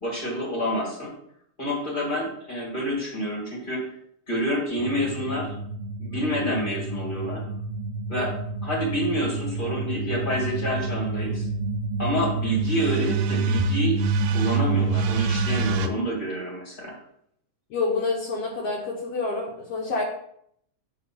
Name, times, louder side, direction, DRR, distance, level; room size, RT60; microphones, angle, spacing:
voice 1, 0.0-1.1 1.6-3.8 4.3-5.5 6.0-7.4 8.1-8.3 8.6-11.5 12.0-14.0 14.3-17.0, equal, 25° left, -2 dB, 1.3 m, -28 dB
sound 1, 4.8-15.9, right 3 dB, 80° right, 1.8 m, -27 dB
voice 2, 17.7-20.0, left 3 dB, 65° left, -2 dB, 1.8 m, -28 dB
8.2 x 3.1 x 5.8 m, 0.69 s
omnidirectional pair, 3.4 m